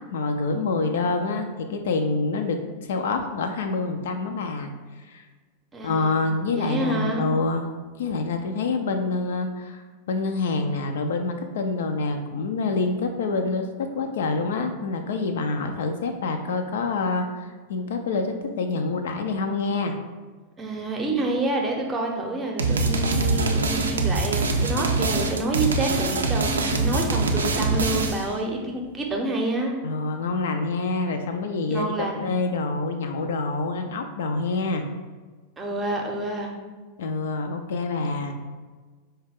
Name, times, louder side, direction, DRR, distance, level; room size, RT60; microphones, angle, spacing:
voice 1, 0.1-4.7 5.1-5.2 5.8-7.7 8.0-20.0 29.8-34.8 37.0-38.3, left 3 dB, 60° left, 5 dB, 0.3 m, -26 dB
voice 2, 5.7-7.3 20.6-29.7 31.7-32.3 35.6-36.5, right 2 dB, 15° right, 0 dB, 0.6 m, -28 dB
sound 1, 22.6-28.3, right 3 dB, 70° right, 0.4 m, -24 dB
4.7 x 2.2 x 3.4 m, 1.4 s
figure-of-eight pair, 90°, 0 cm